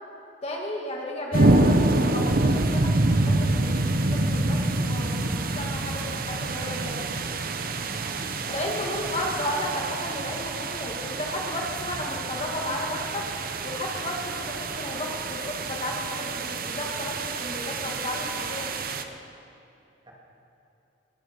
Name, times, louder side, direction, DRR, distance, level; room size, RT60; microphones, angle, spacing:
voice 1, 0.4-7.0 8.5-13.3 13.6-18.7, left 1 dB, 35° left, -1 dB, 2.1 m, -33 dB
sound 1, 1.3-19.0, right 2 dB, 50° right, 0.9 m, -27 dB
voice 2, 7.8-8.9 20.1-20.2, right 1 dB, 25° right, -3 dB, 2.7 m, -45 dB
20.5 x 13.5 x 5.3 m, 2.8 s
head